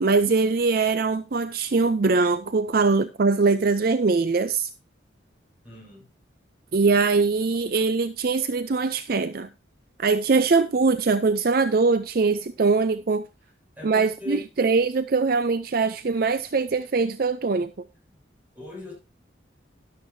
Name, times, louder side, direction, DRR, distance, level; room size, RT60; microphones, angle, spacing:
voice 1, 0.0-4.7 6.7-9.5 10.0-13.3 13.8-17.7, right 4 dB, 50° right, 0.5 m, -22 dB
voice 2, 5.6-6.1 13.8-14.4 18.1-18.2 18.5-18.9, left 2 dB, 10° right, 7.1 m, -38 dB
12.5 x 11.0 x 2.7 m
head